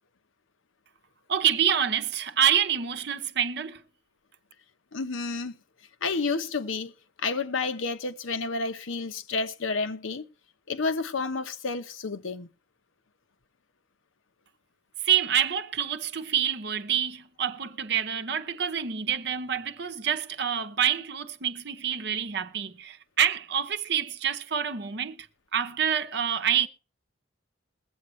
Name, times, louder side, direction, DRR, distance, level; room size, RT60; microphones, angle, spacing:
voice 1, 1.3-3.8 15.0-25.3 25.5-26.7, right 9 dB, 55° right, 0.7 m, -27 dB
voice 2, 4.9-5.6 6.0-6.9 7.2-10.3 10.7-12.5, left 4 dB, 80° left, 0.8 m, -30 dB
21.5 x 7.9 x 3.1 m
head